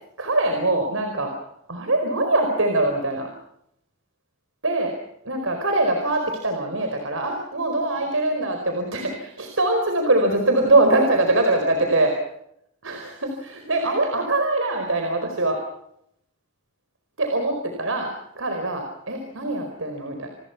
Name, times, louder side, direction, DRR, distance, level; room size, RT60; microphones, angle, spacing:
voice 1, 0.2-1.3 1.7-3.3 4.6-4.9 5.2-12.1 12.8-15.6 17.2-18.1 18.3-20.3, right 2 dB, 80° right, 4 dB, 4.7 m, -23 dB
29.5 x 21.0 x 6.0 m, 0.76 s
head